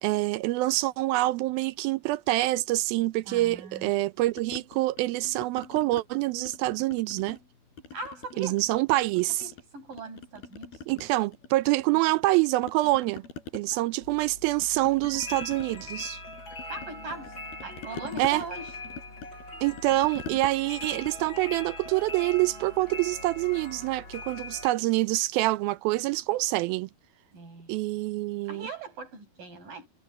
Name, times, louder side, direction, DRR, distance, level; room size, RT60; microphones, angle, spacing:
voice 1, 0.0-7.4 8.4-9.5 10.9-13.2 13.5-16.2 18.2-18.4 19.6-26.9 27.7-28.7, right 18 dB, 80° right, 2.4 m, -26 dB
voice 2, 3.3-3.9 7.9-8.6 9.4-10.7 13.7-13.8 16.7-17.3 17.6-18.7 27.3-27.7 28.5-29.9, right 3 dB, 60° right, 7.4 m, -40 dB
sound 1, 4.4-6.1 6.4-7.5 7.8-9.6 9.9-12.3 12.6-22.4, left 5 dB, 90° left, 6.5 m, -45 dB
sound 2, 14.0-24.7, left 2 dB, 30° left, 8.3 m, -42 dB
omnidirectional pair, 4.4 m